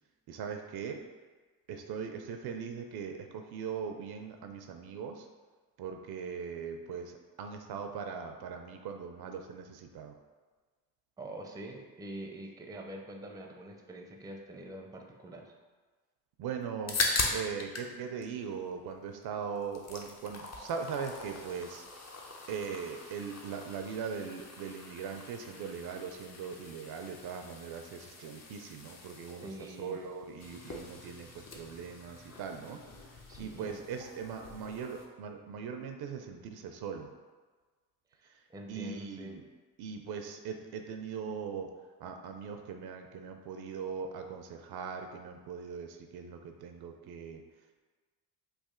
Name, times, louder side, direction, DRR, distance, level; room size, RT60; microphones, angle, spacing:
voice 1, 0.3-1.0 1.7-5.3 5.8-7.1 7.4-10.2 16.4-21.8 22.5-29.5 29.8-32.8 33.4-37.1 38.7-39.4 39.8-41.7 42.0-47.4, right 6 dB, 60° right, 5 dB, 0.5 m, -40 dB
voice 2, 11.2-15.5 29.4-30.0 33.3-33.8 38.2-39.4, right 1 dB, 10° right, 2 dB, 0.5 m, -45 dB
sound 1, 16.6-17.9 18.2-19.2 19.5-35.1, left 3 dB, 35° left, 0.7 m, -41 dB
3.2 x 2.5 x 3.6 m, 1.4 s
supercardioid pair, 60°, 43 cm